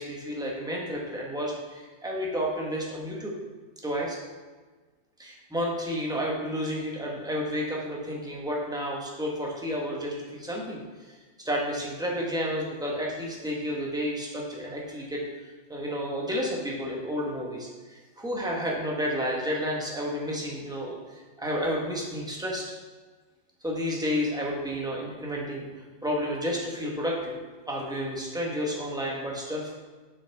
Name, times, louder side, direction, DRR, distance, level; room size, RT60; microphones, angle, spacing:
voice 1, 0.0-3.3 3.8-4.2 5.2-11.2 11.4-15.2 15.7-22.6 23.6-27.3 27.7-29.8, equal, 5° right, -3 dB, 0.9 m, -31 dB
7.4 x 6.3 x 3.5 m, 1.3 s
omnidirectional pair, 1.9 m